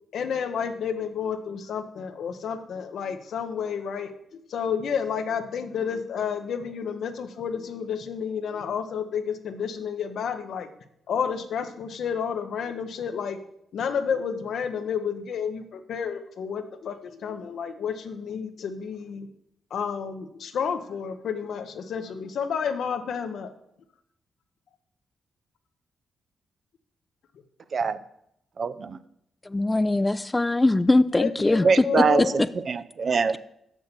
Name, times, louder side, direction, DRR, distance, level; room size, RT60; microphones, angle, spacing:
voice 1, 0.1-4.1 4.5-10.7 11.1-13.4 13.7-19.3 19.7-23.5 31.1-32.4, left 7 dB, 70° left, 0.9 m, -30 dB
voice 2, 28.6-29.0 31.6-33.4, right 5 dB, 55° right, 0.6 m, -24 dB
voice 3, 29.5-31.8 32.2-32.3, left 2 dB, 20° left, 0.5 m, -21 dB
6.7 x 6.3 x 6.9 m
supercardioid pair, 45°, 0 cm